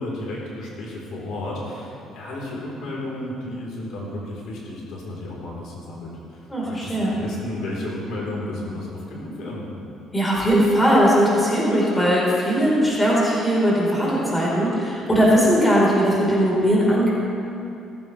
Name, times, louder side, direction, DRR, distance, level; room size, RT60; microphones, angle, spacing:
voice 1, 0.0-9.7, left 1 dB, 70° left, -4 dB, 3.7 m, -33 dB
voice 2, 6.5-7.2 10.1-17.1, equal, 10° left, -6 dB, 3.9 m, -19 dB
17.5 x 15.0 x 3.3 m, 2.6 s
cardioid pair, 135°, 0 cm